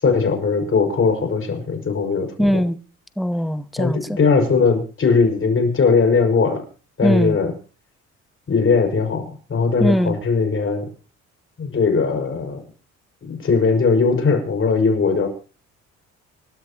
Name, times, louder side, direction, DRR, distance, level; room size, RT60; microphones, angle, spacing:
voice 1, 0.0-2.6 3.8-6.6 7.0-7.5 8.5-10.9 11.6-12.6 13.3-15.3, left 4 dB, 45° left, 5.6 m, -19 dB
voice 2, 2.4-2.8 3.2-4.2 7.0-7.4 9.8-10.2, equal, ahead, 0.9 m, -20 dB
26.5 x 13.0 x 2.9 m
cardioid pair, 90°, 30 cm